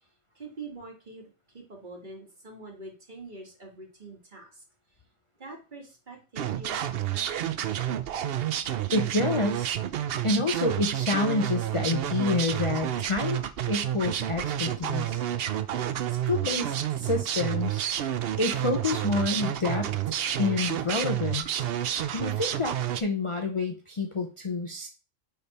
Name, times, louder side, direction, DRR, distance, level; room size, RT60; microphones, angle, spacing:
voice 1, 0.3-4.6 5.4-7.6, right 3 dB, 35° right, 1 dB, 1.8 m, -45 dB
sound 1, 6.4-23.0, right 11 dB, 60° right, 0.7 m, -30 dB
voice 2, 8.9-9.7 10.2-13.4 13.7-15.2 16.1-17.8 18.4-21.7 22.1-24.9, left 3 dB, 30° left, 3 dB, 0.6 m, -28 dB
9.6 x 3.6 x 4.1 m, 0.33 s
omnidirectional pair, 1.4 m